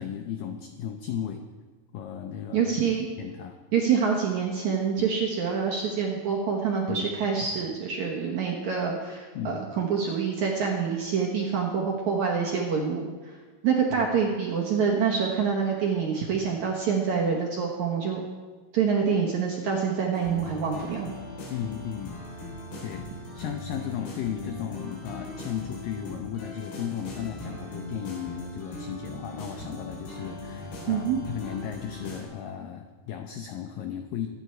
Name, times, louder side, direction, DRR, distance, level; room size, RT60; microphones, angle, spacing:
voice 1, 0.0-1.4 1.9-2.7 3.2-3.6 5.0-5.1 6.9-7.1 9.3-9.6 14.0-14.1 21.5-22.2 22.8-23.1 23.3-34.3, left 9 dB, 85° left, 6 dB, 2.0 m, -35 dB
voice 2, 2.5-3.1 3.7-13.4 13.6-18.2 18.7-21.1 30.9-31.2, right 6 dB, 65° right, -1 dB, 1.9 m, -26 dB
sound 1, 20.1-32.2, left 2 dB, 65° left, 5.8 m, -40 dB
24.5 x 9.6 x 4.5 m, 1.4 s
omnidirectional pair, 5.1 m